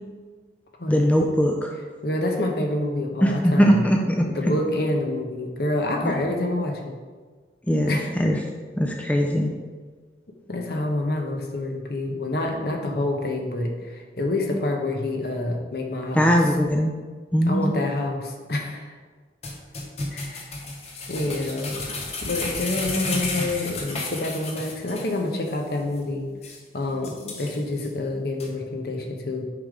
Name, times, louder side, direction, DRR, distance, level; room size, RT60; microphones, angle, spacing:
voice 1, 0.9-1.7 3.2-4.3 6.0-6.1 7.7-8.4 8.8-9.5 16.1-16.9 17.3-17.7, equal, 10° left, 1 dB, 0.4 m, -20 dB
voice 2, 2.0-3.9 4.3-7.0 7.9-8.1 10.5-16.3 17.5-18.9 20.1-20.5 21.1-21.7 22.2-26.3 26.7-29.4, left 2 dB, 60° left, 2 dB, 0.9 m, -27 dB
sound 1, 19.4-25.2 25.5-25.6 26.0-26.1 26.4-26.6 27.0-27.9 28.4-28.5, left 3 dB, 35° left, 1.0 m, -32 dB
6.9 x 5.1 x 3.6 m, 1.4 s
head